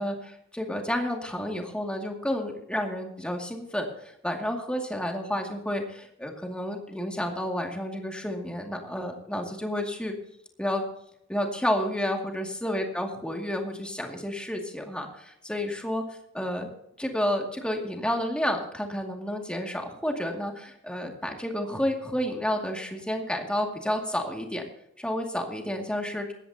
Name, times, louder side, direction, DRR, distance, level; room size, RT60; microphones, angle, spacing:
voice 1, 0.0-10.1 10.6-10.8 11.3-16.0 16.3-16.7 17.0-24.6 25.0-26.3, left 1 dB, 5° left, 2 dB, 2.2 m, -30 dB
18.0 x 14.5 x 2.8 m, 0.76 s
head